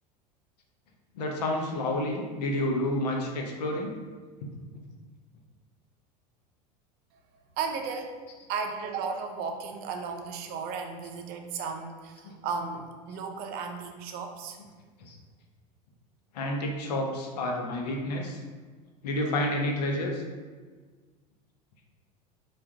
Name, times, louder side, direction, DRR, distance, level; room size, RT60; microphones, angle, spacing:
voice 1, 1.2-3.9 15.0-15.2 16.3-18.4 19.0-20.2, left 1 dB, 75° left, 1 dB, 0.7 m, -29 dB
voice 2, 7.3-8.2 8.5-14.6, right 5 dB, 50° right, 4 dB, 0.6 m, -35 dB
3.6 x 2.5 x 3.4 m, 1.4 s
hypercardioid pair, 80°, 21 cm